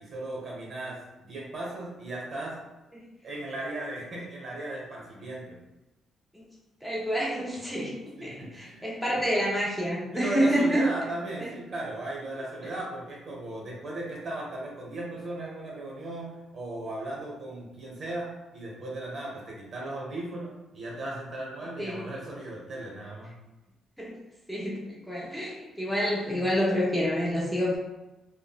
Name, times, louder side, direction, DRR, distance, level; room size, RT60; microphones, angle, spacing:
voice 1, 0.0-2.6 3.2-5.6 8.2-9.3 10.1-23.3, right 1 dB, 50° right, -3 dB, 1.1 m, -36 dB
voice 2, 6.8-10.9 21.8-22.1 24.0-24.1 24.5-27.8, equal, ahead, -5 dB, 0.6 m, -28 dB
3.6 x 2.1 x 2.3 m, 1.0 s
cardioid pair, 90°, 0 cm